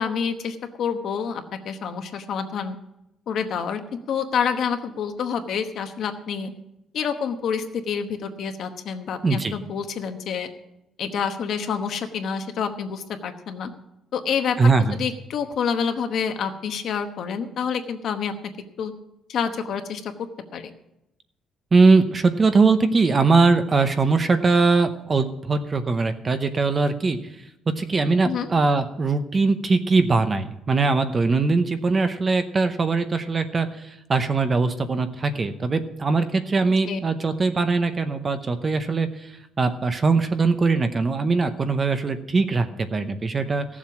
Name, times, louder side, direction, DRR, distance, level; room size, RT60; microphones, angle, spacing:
voice 1, 0.0-2.8 3.3-3.8 4.1-6.5 6.9-10.5 11.0-13.7 14.1-14.6 15.0-18.3 18.8-18.9 19.3-20.1 20.5-20.7 28.2-28.5 36.8-37.0, left 7 dB, 50° left, 7 dB, 1.1 m, -28 dB
voice 2, 9.2-9.5 14.6-15.0 21.7-27.2 27.7-33.7 34.1-39.1 39.6-43.7, right 4 dB, 20° right, 9 dB, 0.7 m, -21 dB
15.5 x 7.4 x 6.0 m, 0.86 s
cardioid pair, 175°, 0 cm